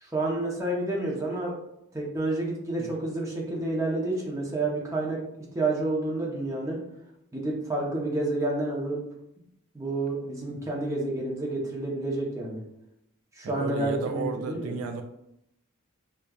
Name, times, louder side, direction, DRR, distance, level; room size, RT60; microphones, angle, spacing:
voice 1, 0.0-1.5 1.9-5.2 5.5-6.8 7.3-9.0 9.7-12.6 13.3-14.7, right 2 dB, 15° right, -3 dB, 0.7 m, -29 dB
voice 2, 13.4-15.0, right 4 dB, 75° right, 5 dB, 0.3 m, -33 dB
4.9 x 2.3 x 2.3 m, 0.80 s
head